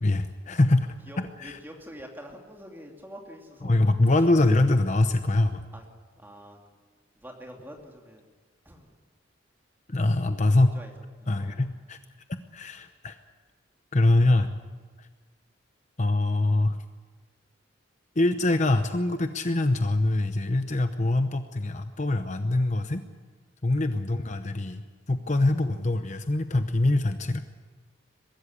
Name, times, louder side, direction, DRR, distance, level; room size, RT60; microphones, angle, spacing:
voice 1, 0.0-0.9 1.4-1.6 3.6-5.6 9.9-10.8 11.3-12.0 12.5-13.2 13.9-14.5 15.0-15.1 16.0-16.8 18.2-23.0 23.6-24.8 25.1-27.4, left 2 dB, 35° left, 8 dB, 0.8 m, -24 dB
voice 2, 1.1-3.8 4.4-4.5 5.7-5.8 6.2-6.6 7.2-8.2 8.6-8.9 10.5-10.9 11.2-11.6, equal, 10° right, 1 dB, 2.8 m, -45 dB
23.0 x 13.5 x 9.9 m, 1.4 s
head